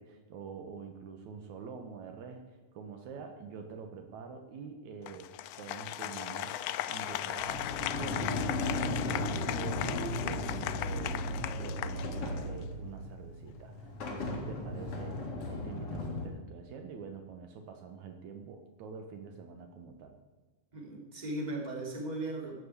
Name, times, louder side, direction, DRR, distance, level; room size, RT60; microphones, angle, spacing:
voice 1, 0.0-2.4 2.7-5.3 5.6-20.1, right 6 dB, 75° right, 6 dB, 2.3 m, -46 dB
Applause, 5.1-12.6, left 13 dB, 80° left, 1.5 m, -37 dB
Sliding door, 7.0-16.3, left 1 dB, 50° left, 2.8 m, -36 dB
voice 2, 20.7-22.6, right 2 dB, 15° right, -2 dB, 2.7 m, -37 dB
14.5 x 6.8 x 8.2 m, 1.3 s
omnidirectional pair, 3.5 m